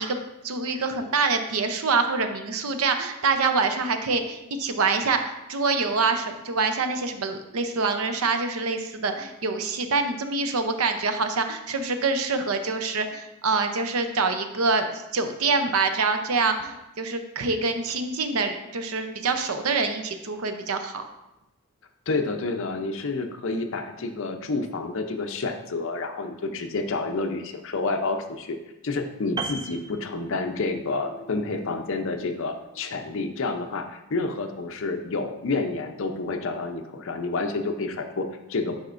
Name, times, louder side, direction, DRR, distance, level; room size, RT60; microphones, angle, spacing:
voice 1, 0.0-14.9 15.1-21.0, right 4 dB, 85° right, 7 dB, 0.6 m, -25 dB
voice 2, 22.1-28.6 28.8-38.8, left 3 dB, 65° left, 6 dB, 0.6 m, -29 dB
Piano, 29.4-30.8 31.1-31.3, right 4 dB, 20° right, 0.3 m, -35 dB
sound 1, 29.7-33.3, equal, 40° left, 2.2 m, -46 dB
10.5 x 4.2 x 2.5 m, 0.94 s
head